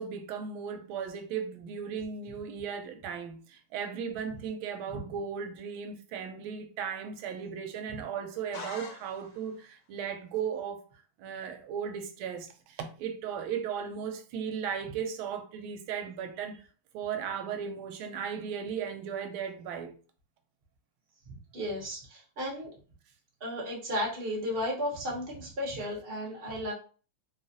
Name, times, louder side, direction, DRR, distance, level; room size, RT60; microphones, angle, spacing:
voice 1, 0.0-10.8 11.2-16.6 16.9-19.9, right 7 dB, 80° right, 1.3 m, -36 dB
sound 1, 8.5-9.6, left 4 dB, 70° left, 1.2 m, -44 dB
voice 2, 21.3-22.7 23.4-26.7, equal, 45° right, 0.7 m, -34 dB
3.3 x 2.4 x 2.6 m
omnidirectional pair, 2.4 m